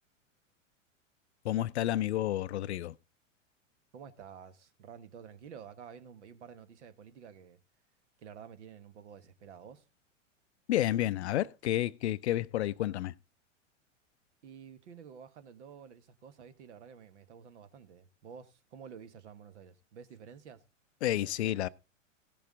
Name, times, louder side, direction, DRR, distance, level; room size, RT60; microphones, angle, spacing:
voice 1, 1.4-2.9 10.7-13.1 21.0-21.7, left 13 dB, 60° left, 0.6 m, -30 dB
voice 2, 3.9-7.6 8.2-9.8 14.4-20.6, right 7 dB, 60° right, 1.5 m, -50 dB
16.5 x 6.9 x 3.7 m
figure-of-eight pair, 95°, 38 cm